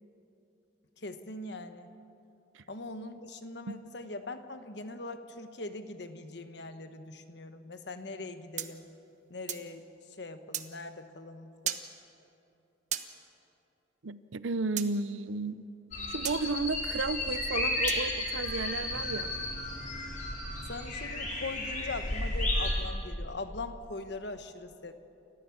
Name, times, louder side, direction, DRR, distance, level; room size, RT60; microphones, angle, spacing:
voice 1, 1.0-1.9 2.7-8.8 9.3-9.8 10.2-11.8 20.7-24.9, left 2 dB, 60° left, 9 dB, 1.2 m, -41 dB
sound 1, 8.6-9.7 10.5-10.7 11.6-11.9 12.9-13.1 14.8-14.9 16.2-16.4 17.9-18.1, right 10 dB, 40° right, 0.9 m, -35 dB
voice 2, 14.0-15.7 16.1-19.3, right 3 dB, 80° right, 14 dB, 0.7 m, -33 dB
sound 2, 15.9-22.7, left 2 dB, 40° left, 5.0 m, -33 dB
29.5 x 14.5 x 7.2 m, 2.8 s
head